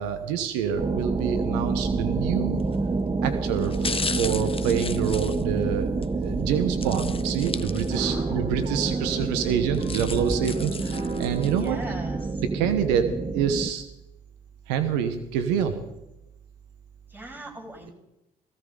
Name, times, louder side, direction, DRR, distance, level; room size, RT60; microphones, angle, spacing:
voice 1, 0.0-2.6 3.2-5.9 6.2-11.8 12.4-13.0 13.3-13.8 14.7-15.8, right 8 dB, 80° right, 8 dB, 1.1 m, -27 dB
sound 1, 0.8-13.7, right 3 dB, 25° right, 1.1 m, -28 dB
sound 2, 2.6-2.9 3.6-6.1 6.8-8.3 8.6-8.7 9.5-11.7 12.2-12.3, left 5 dB, 25° left, 0.9 m, -35 dB
sound 3, 6.8-12.3, right 3 dB, 45° right, 4.6 m, -39 dB
voice 2, 7.9-8.5 11.5-12.4 17.1-17.9, right 1 dB, 10° right, 0 dB, 6.3 m, -41 dB
17.0 x 16.0 x 3.9 m, 0.93 s
hypercardioid pair, 55°, 21 cm